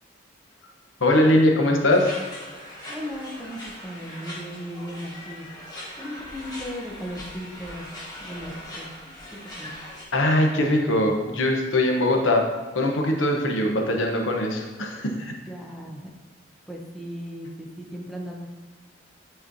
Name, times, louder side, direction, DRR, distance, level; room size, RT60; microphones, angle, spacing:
voice 1, 1.0-2.1 10.1-12.4 12.7-15.3, left 1 dB, 85° left, 2 dB, 0.9 m, -21 dB
sound 1, 1.9-10.0, left 1 dB, 20° left, 1.3 m, -40 dB
voice 2, 2.9-5.5 6.0-7.9 8.2-8.9 9.3-9.7 15.5-16.1 16.7-18.5, equal, ahead, -1 dB, 0.7 m, -36 dB
8.7 x 4.3 x 2.6 m, 1.3 s
head